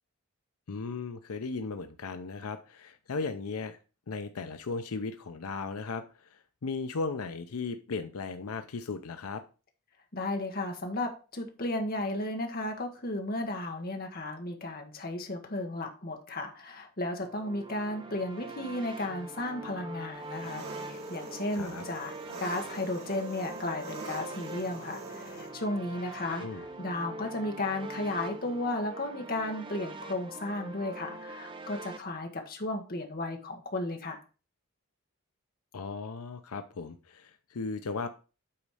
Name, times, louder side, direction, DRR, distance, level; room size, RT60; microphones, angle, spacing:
voice 1, 0.7-3.8 4.1-9.4 21.5-21.8 26.4-26.6 35.7-38.1, left 4 dB, 80° left, 9 dB, 0.6 m, -36 dB
voice 2, 10.1-22.1 22.4-34.2, left 2 dB, 40° left, 3 dB, 1.2 m, -34 dB
sound 1, 17.2-32.0, right 2 dB, 20° right, 0.7 m, -43 dB
Engine, 20.2-25.5, right 2 dB, 70° right, 2.6 m, -44 dB
8.6 x 4.1 x 4.8 m, 0.34 s
head